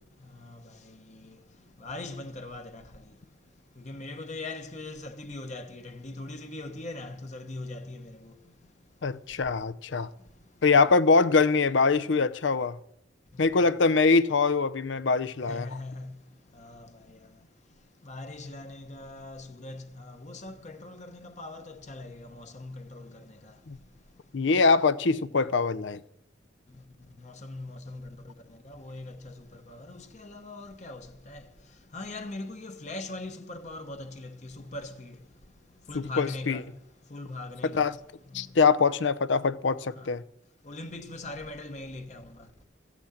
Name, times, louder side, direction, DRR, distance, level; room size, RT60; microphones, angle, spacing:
voice 1, 1.8-2.8 3.8-8.3 13.3-13.5 15.4-16.1 16.5-16.9 18.0-23.5 27.2-28.1 28.6-31.4 31.9-35.2 35.9-36.7 37.1-37.9 38.3-38.5 40.0-40.1 40.7-42.2, left 2 dB, 35° left, 1.0 m, -40 dB
voice 2, 9.0-10.1 10.6-12.8 13.4-15.7 23.7-23.8 24.3-26.0 35.9-36.6 37.7-37.9 38.3-40.2, left 4 dB, 70° left, 0.6 m, -23 dB
14.5 x 6.1 x 8.6 m
head